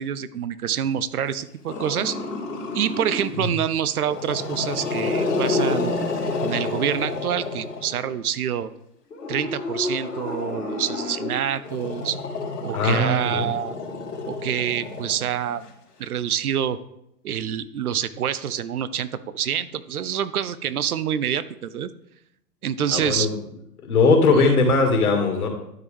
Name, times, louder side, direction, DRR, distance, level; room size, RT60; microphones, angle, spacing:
voice 1, 0.0-2.2 2.7-5.9 6.4-8.7 9.3-12.2 12.6-13.8 14.3-15.7 16.0-16.8 17.2-21.9 22.6-23.3 24.4-24.5, right 9 dB, 65° right, 15 dB, 0.6 m, -26 dB
Growling, 1.7-3.4 4.0-8.1 9.1-15.6, left 3 dB, 80° left, 2.8 m, -29 dB
voice 2, 12.7-13.5 22.9-23.3 23.8-25.5, left 3 dB, 65° left, 2 dB, 2.1 m, -19 dB
12.0 x 4.5 x 3.4 m, 0.79 s
hypercardioid pair, 125°, 48 cm